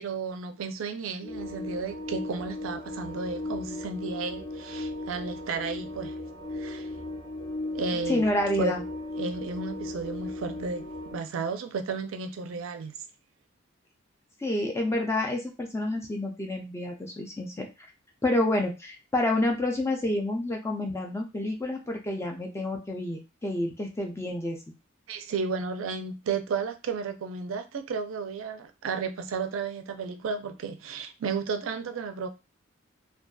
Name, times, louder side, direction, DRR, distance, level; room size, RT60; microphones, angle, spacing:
voice 1, 0.0-6.2 6.5-6.9 7.7-8.2 8.6-8.7 9.2-12.9 25.1-32.3, right 5 dB, 90° right, 0.4 m, -33 dB
sound 1, 1.2-11.2, left 1 dB, 50° left, 0.8 m, -36 dB
voice 2, 8.1-8.8 14.4-17.7 18.2-24.6, left 1 dB, 15° left, 0.4 m, -28 dB
2.6 x 2.3 x 2.2 m
head